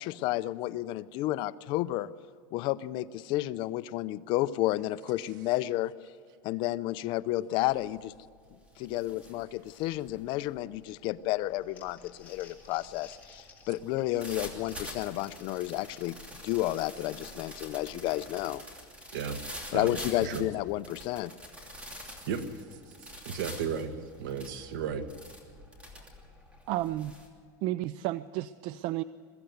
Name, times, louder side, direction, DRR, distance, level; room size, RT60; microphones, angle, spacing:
voice 1, 0.0-2.1 2.5-5.9 6.4-8.1 8.8-16.2 16.4-18.6 19.7-21.3, left 16 dB, 50° left, 15 dB, 0.6 m, -31 dB
sound 1, 8.3-27.3, equal, 10° right, 2.9 m, -47 dB
Crumpling crinkling, 11.5-18.4, left 6 dB, 15° left, 3.5 m, -57 dB
voice 2, 23.0-23.9 24.2-25.1, right 7 dB, 75° right, 9 dB, 1.8 m, -34 dB
voice 3, 26.7-27.1 27.6-29.0, right 15 dB, 50° right, 16 dB, 0.5 m, -32 dB
22.5 x 15.0 x 8.0 m, 2.2 s
supercardioid pair, 155°, 11 cm